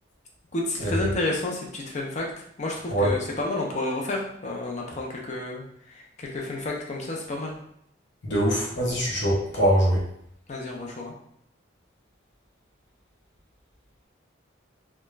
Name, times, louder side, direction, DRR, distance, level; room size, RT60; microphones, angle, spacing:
voice 1, 0.5-2.3 2.6-5.6 6.2-7.5 10.5-11.1, left 2 dB, 35° left, -1 dB, 0.5 m, -30 dB
voice 2, 8.2-10.0, right 1 dB, 65° left, -3 dB, 0.8 m, -23 dB
2.4 x 2.2 x 3.1 m, 0.71 s
head